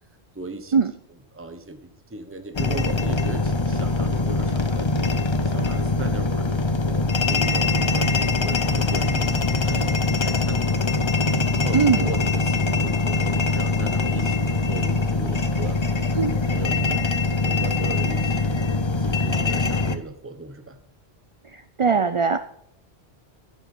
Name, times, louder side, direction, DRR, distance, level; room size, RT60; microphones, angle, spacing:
voice 1, 0.3-0.8 1.1-4.9 5.2-10.9 11.5-15.8 16.3-17.0 17.4-18.6 19.0-20.8, right 2 dB, 15° right, 6 dB, 1.0 m, -37 dB
sound 1, 2.5-20.0, left 3 dB, 30° left, 0.6 m, -23 dB
voice 2, 11.7-12.1 16.2-16.3 21.5-22.4, right 5 dB, 40° right, 10 dB, 0.4 m, -20 dB
11.0 x 7.6 x 5.5 m, 0.69 s
omnidirectional pair, 1.1 m